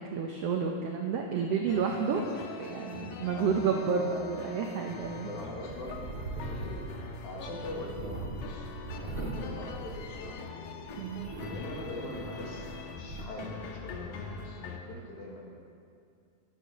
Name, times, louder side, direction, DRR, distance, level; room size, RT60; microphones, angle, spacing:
voice 1, 0.0-2.2 2.6-5.3 11.0-11.4, right 6 dB, 85° right, 2 dB, 1.3 m, -30 dB
sound 1, 1.7-14.8, left 5 dB, 80° left, 2.5 m, -43 dB
voice 2, 5.2-6.9 7.2-10.7 11.5-15.5, left 1 dB, 65° left, -2 dB, 3.2 m, -43 dB
sound 2, 5.7-10.5 10.9-13.3, right 2 dB, 40° right, 1.9 m, -41 dB
12.0 x 10.5 x 6.4 m, 2.4 s
omnidirectional pair, 3.9 m